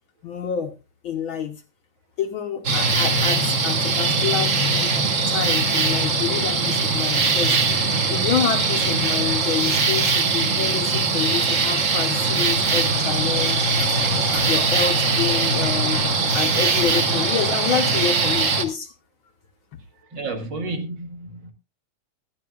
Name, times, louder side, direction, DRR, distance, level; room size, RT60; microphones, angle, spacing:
voice 1, 0.2-0.7 1.0-1.6 2.2-4.9 5.3-14.0 14.3-18.9, left 8 dB, 75° left, 1.1 m, -28 dB
sound 1, 2.6-18.6, right 4 dB, 65° right, 0.7 m, -21 dB
voice 2, 20.1-21.5, right 2 dB, 40° right, 2.1 m, -31 dB
17.5 x 12.0 x 2.4 m
omnidirectional pair, 3.5 m